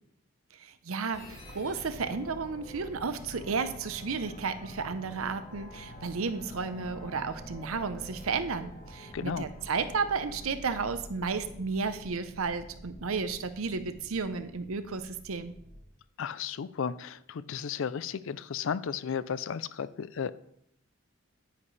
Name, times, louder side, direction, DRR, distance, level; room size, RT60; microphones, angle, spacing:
voice 1, 0.5-15.5, right 4 dB, 80° right, 11 dB, 0.7 m, -33 dB
sound 1, 1.1-15.8, equal, 50° left, 4.3 m, -47 dB
voice 2, 9.1-9.5 16.2-20.3, left 7 dB, 65° left, 17 dB, 0.4 m, -34 dB
10.0 x 9.6 x 3.2 m, 0.73 s
head